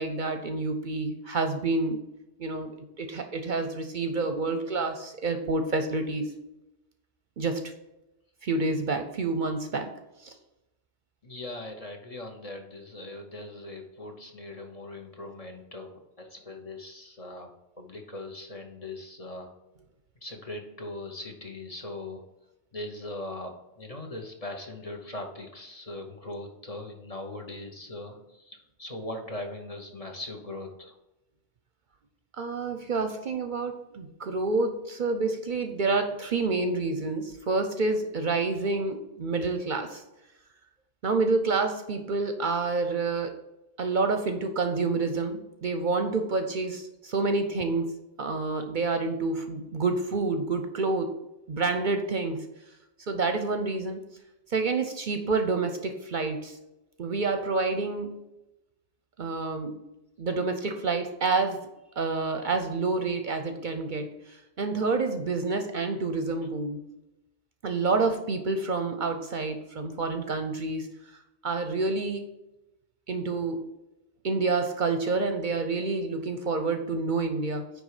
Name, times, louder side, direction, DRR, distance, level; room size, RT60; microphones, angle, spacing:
voice 1, 0.0-2.0 2.4-2.7 3.0-6.3 7.4-7.6 8.4-9.9 10.2-10.3 32.4-40.0 41.0-43.4 43.8-47.9 48.2-51.1 51.5-52.4 53.1-54.0 54.5-56.6 57.0-58.2 59.2-59.8 60.2-61.7 62.0-66.8 67.6-70.9 71.4-72.2 73.1-73.6 74.2-77.7, right 3 dB, 55° right, 7 dB, 0.7 m, -28 dB
voice 2, 11.2-17.5 17.8-19.5 20.2-22.2 22.7-30.9, left 2 dB, 35° left, 3 dB, 0.9 m, -40 dB
9.4 x 3.3 x 4.8 m, 0.94 s
omnidirectional pair, 1.1 m